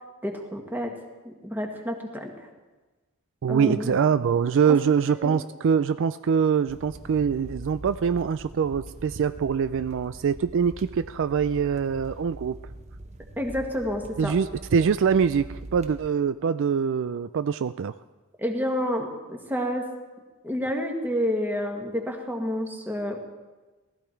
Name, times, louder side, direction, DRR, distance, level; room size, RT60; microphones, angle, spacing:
voice 1, 0.2-0.9 1.2-2.5 3.5-3.9 4.6-4.8 5.1-5.4 13.4-14.3 18.4-19.9 20.4-23.2, equal, 10° right, 2 dB, 1.7 m, -29 dB
voice 2, 3.4-12.6 14.2-17.9, right 6 dB, 60° right, 13 dB, 0.4 m, -24 dB
sound 1, 6.7-16.1, right 1 dB, 30° right, 0.9 m, -43 dB
19.0 x 13.5 x 4.5 m, 1.2 s
head